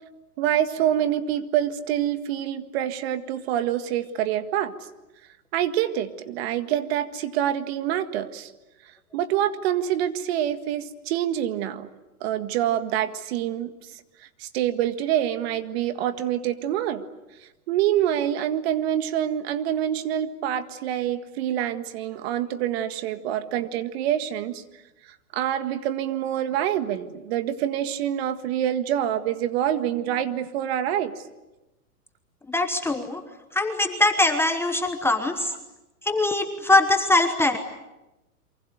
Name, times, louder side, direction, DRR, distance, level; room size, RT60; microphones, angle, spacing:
voice 1, 0.4-4.7 5.5-8.5 9.1-11.9 12.2-13.7 14.4-17.0 17.7-24.6 25.3-31.2, right 11 dB, 40° right, 10 dB, 1.8 m, -26 dB
voice 2, 32.5-33.2 33.5-35.5 36.0-37.6, left 2 dB, 5° left, 6 dB, 1.1 m, -22 dB
28.0 x 24.0 x 8.1 m, 1.0 s
hypercardioid pair, 145°, 45 cm